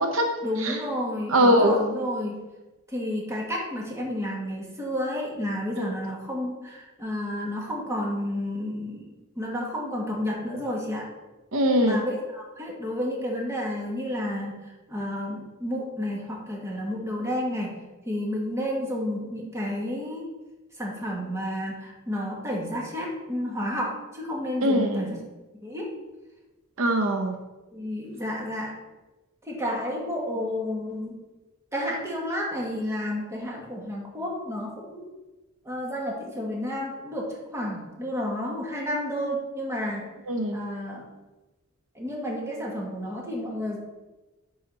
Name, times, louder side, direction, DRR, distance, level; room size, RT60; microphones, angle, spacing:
voice 1, 0.4-2.3 2.9-11.1 11.8-17.7 18.0-20.2 20.8-25.2 25.6-25.9 27.7-28.7 29.4-31.1 31.7-35.1 35.6-40.0 40.5-41.0 41.9-43.8, left 1 dB, 15° right, -2 dB, 1.7 m, -31 dB
voice 2, 1.3-1.8 5.8-5.9 11.5-12.0 24.6-25.1 26.8-27.4 40.3-40.6, equal, 70° right, 4 dB, 0.8 m, -22 dB
10.5 x 4.1 x 4.0 m, 1.1 s
head